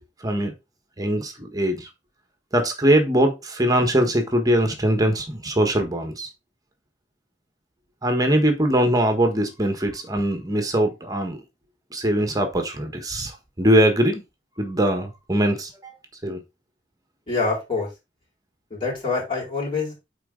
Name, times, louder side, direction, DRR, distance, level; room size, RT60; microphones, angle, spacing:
voice 1, 0.2-0.5 1.0-1.9 2.5-6.3 8.0-11.4 11.9-14.2 14.6-15.9 16.2-16.4, right 1 dB, 20° right, 1.4 m, -22 dB
voice 2, 17.3-17.9 18.7-19.9, left 4 dB, 30° left, 4.7 m, -25 dB
8.9 x 4.2 x 3.8 m
head